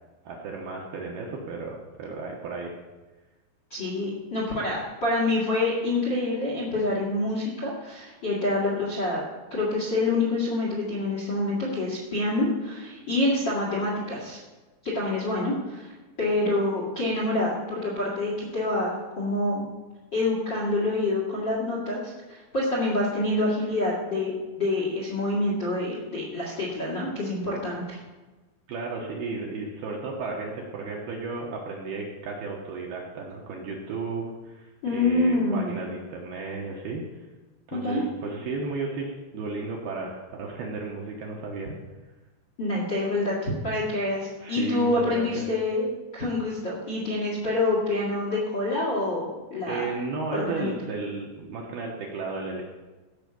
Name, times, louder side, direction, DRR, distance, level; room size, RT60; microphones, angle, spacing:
voice 1, 0.2-2.7 28.7-34.7 34.9-37.0 37.7-41.7 44.4-45.4 49.7-52.6, right 3 dB, 70° right, -2 dB, 2.6 m, -34 dB
voice 2, 3.7-9.2 9.5-14.4 14.8-15.9 16.2-19.6 20.1-28.0 34.8-35.7 37.7-38.0 42.6-45.9 46.1-49.2 49.5-49.9 50.3-50.7, left 2 dB, 40° left, -3 dB, 1.6 m, -27 dB
16.0 x 5.7 x 7.0 m, 1.2 s
omnidirectional pair, 5.9 m